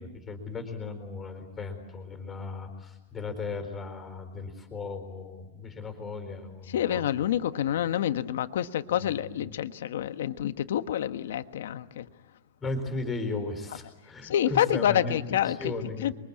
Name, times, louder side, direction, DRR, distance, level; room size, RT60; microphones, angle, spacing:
voice 1, 0.0-7.1 8.9-9.5 12.6-16.1, left 3 dB, 10° left, 6 dB, 4.2 m, -36 dB
voice 2, 6.7-12.1 14.2-15.7 16.0-16.1, left 10 dB, 70° left, 10 dB, 1.4 m, -28 dB
28.0 x 23.5 x 8.7 m, 1.0 s
supercardioid pair, 175°, 0 cm